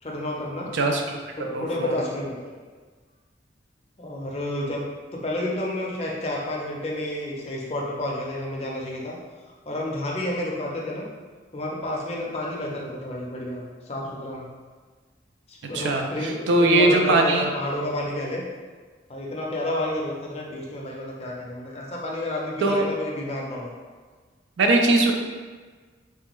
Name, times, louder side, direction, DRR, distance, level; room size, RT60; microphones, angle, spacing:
voice 1, 0.0-0.7 1.4-2.5 4.0-4.8 5.1-9.2 9.7-11.1 11.5-14.4 15.5-18.4 19.1-23.7, left 1 dB, 35° left, -3 dB, 0.5 m, -30 dB
voice 2, 0.7-2.0 15.6-16.1 16.5-17.5 22.6-22.8 24.6-25.1, right 2 dB, 85° right, 2 dB, 0.4 m, -21 dB
3.3 x 2.2 x 2.9 m, 1.4 s
head